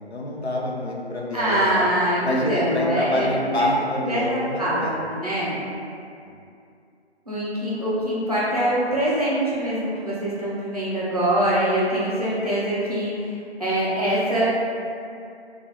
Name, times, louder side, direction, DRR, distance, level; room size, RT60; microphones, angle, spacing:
voice 1, 0.0-1.9 2.2-5.0 6.2-6.4, left 1 dB, 75° left, -3 dB, 0.6 m, -26 dB
voice 2, 1.3-3.7 4.0-5.6 7.3-13.3 13.6-14.5, right 1 dB, 35° right, -8 dB, 0.6 m, -24 dB
2.3 x 2.1 x 3.9 m, 2.5 s
figure-of-eight pair, 160°, 33 cm